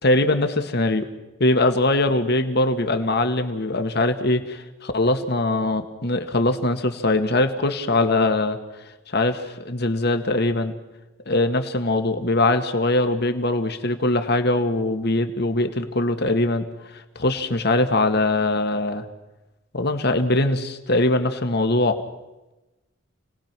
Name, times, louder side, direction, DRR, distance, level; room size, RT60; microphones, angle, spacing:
voice 1, 0.0-1.1 1.4-8.6 9.1-10.7 11.3-16.7 16.9-19.0 19.7-22.0, left 2 dB, 55° left, 7 dB, 1.8 m, -22 dB
29.5 x 19.0 x 6.1 m, 1.0 s
head